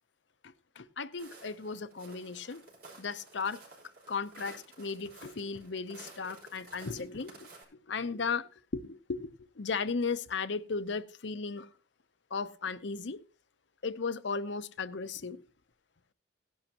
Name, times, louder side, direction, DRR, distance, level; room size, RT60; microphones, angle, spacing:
voice 1, 0.4-2.6 3.0-3.6 4.1-7.5 7.9-9.3 9.6-11.7 12.3-13.2 13.8-15.4, left 4 dB, 70° left, 0.7 m, -36 dB
Walk footsteps, 1.2-7.6, right 3 dB, 50° right, 5.6 m, -53 dB
17.5 x 11.0 x 2.9 m
head